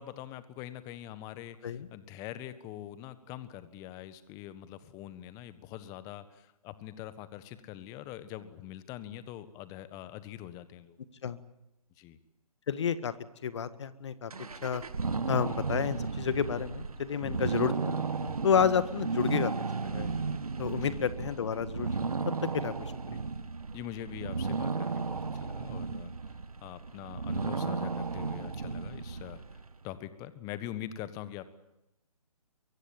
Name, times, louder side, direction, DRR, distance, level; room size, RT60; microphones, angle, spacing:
voice 1, 0.0-11.0 12.0-12.2 17.2-17.4 20.7-21.0 23.7-26.1 26.6-31.4, left 12 dB, 20° left, 14 dB, 1.4 m, -44 dB
voice 2, 12.7-13.1 13.4-14.3 14.6-14.8 15.3-19.5 19.8-20.1 20.6-22.2 22.5-23.2, left 7 dB, 50° left, 13 dB, 1.8 m, -30 dB
sound 1, 14.3-29.7, right 4 dB, 75° right, 1.8 m, -34 dB
23.5 x 23.0 x 8.9 m, 0.89 s
figure-of-eight pair, 145°, 19 cm